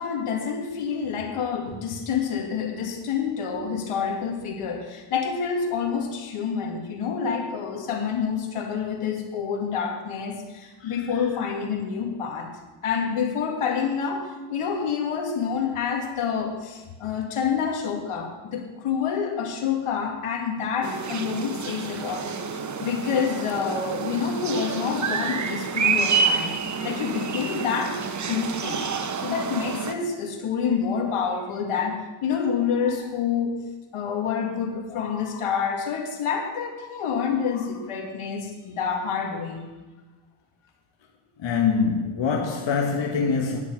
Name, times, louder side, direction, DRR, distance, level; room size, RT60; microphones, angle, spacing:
voice 1, 0.0-12.5 12.8-26.6 26.8-28.9 29.2-33.6 33.9-39.6, left 6 dB, 85° left, 2.1 m, -28 dB
sound 1, 20.8-29.9, right 5 dB, 35° right, 0.9 m, -28 dB
voice 2, 41.4-43.6, left 5 dB, 60° left, 1.4 m, -24 dB
10.0 x 6.5 x 9.1 m
cardioid pair, 120°, 49 cm